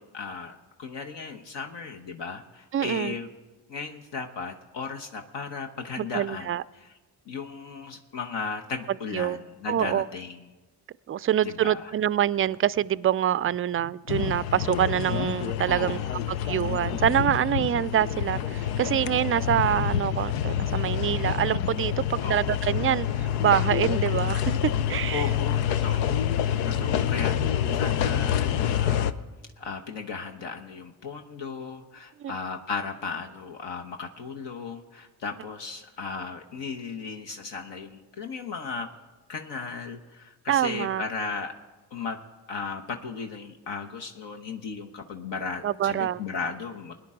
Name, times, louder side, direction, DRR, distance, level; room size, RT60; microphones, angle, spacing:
voice 1, 0.0-3.3 3.7-6.5 6.8-6.9 7.3-10.4 11.4-11.9 15.7-16.2 22.2-22.6 25.1-26.3 26.6-29.2 29.6-38.9 39.3-41.5 41.9-42.2 42.5-46.9, left 5 dB, 60° left, 3 dB, 1.1 m, -36 dB
voice 2, 2.7-3.2 6.0-6.6 9.1-9.4 9.7-10.1 11.1-16.0 16.3-24.6 24.9-25.3 32.2-32.3 40.5-41.0 45.6-46.2, right 11 dB, 30° right, 19 dB, 0.4 m, -25 dB
sound 1, 14.1-29.1, left 10 dB, 85° left, 0.6 m, -27 dB
21.5 x 10.0 x 3.7 m, 1.2 s
hypercardioid pair, 40°, 48 cm